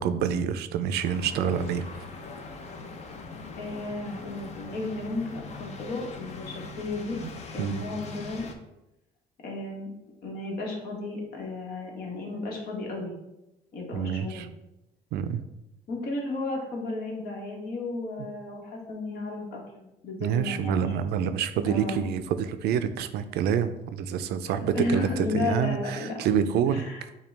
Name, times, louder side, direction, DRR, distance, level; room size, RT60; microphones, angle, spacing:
voice 1, 0.0-1.8 7.2-7.3 7.6-7.8 13.9-14.5 15.1-15.4 20.2-26.8, right 8 dB, 75° right, 11 dB, 0.4 m, -27 dB
sound 1, 1.0-8.5, left 3 dB, 40° left, 0.6 m, -42 dB
voice 2, 3.5-7.2 7.5-8.5 9.4-9.9 10.2-13.1 13.7-14.5 15.9-21.0 21.7-22.1 24.7-26.2 26.7-27.0, left 2 dB, 65° left, 0 dB, 1.3 m, -33 dB
6.8 x 2.3 x 3.3 m, 0.93 s
cardioid pair, 110°, 17 cm